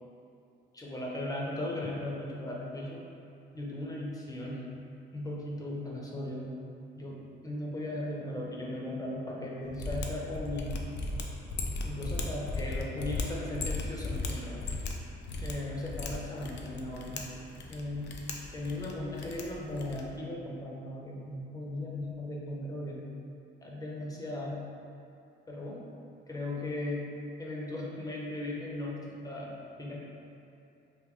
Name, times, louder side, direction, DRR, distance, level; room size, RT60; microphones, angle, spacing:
voice 1, 0.7-3.0 3.5-4.6 5.1-6.5 6.9-10.8 11.8-14.7 15.4-17.3 17.7-18.2 18.5-23.1 23.6-24.7 25.5-25.8 26.3-27.1 27.4-30.0, left 1 dB, 20° left, -3 dB, 0.7 m, -37 dB
Mechanisms, 9.7-20.2, left 3 dB, 60° left, 0.5 m, -37 dB
3.2 x 2.6 x 3.7 m, 2.7 s
cardioid pair, 90°, 20 cm